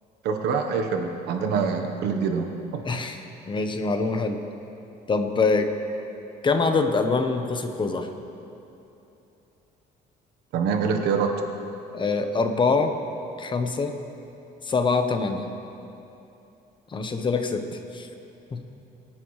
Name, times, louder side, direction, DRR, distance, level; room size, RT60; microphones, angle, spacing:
voice 1, 0.2-2.8 10.5-11.3, right 5 dB, 80° right, 4 dB, 1.2 m, -25 dB
voice 2, 2.8-4.4 5.1-5.7 6.4-8.1 11.9-12.9 13.4-13.9 14.6-15.5 16.9-17.6 17.9-18.1 18.5-18.6, left 4 dB, 30° left, 6 dB, 1.0 m, -24 dB
22.0 x 9.1 x 3.3 m, 2.9 s
cardioid pair, 110°, 17 cm